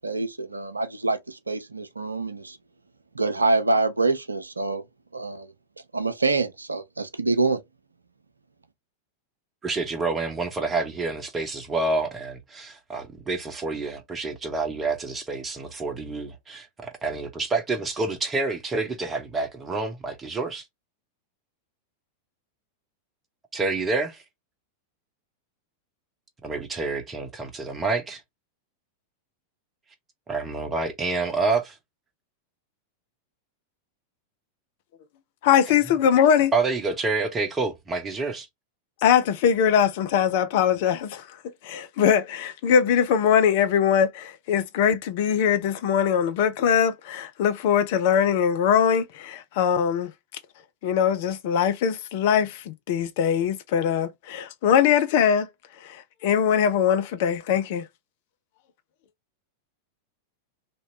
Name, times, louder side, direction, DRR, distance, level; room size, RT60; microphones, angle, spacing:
voice 1, 0.0-2.6 3.2-4.8 5.1-5.5 5.9-7.6, right 3 dB, 80° right, 0.5 m, -25 dB
voice 2, 9.6-20.6 23.5-24.2 26.4-28.2 30.3-31.8 36.5-38.5, right 3 dB, 20° right, 1.0 m, -28 dB
voice 3, 35.4-36.5 39.0-41.3 41.6-50.1 50.8-55.5 55.8-57.8, left 8 dB, 50° left, 0.5 m, -22 dB
3.0 x 2.8 x 2.8 m
figure-of-eight pair, 90°, 0 cm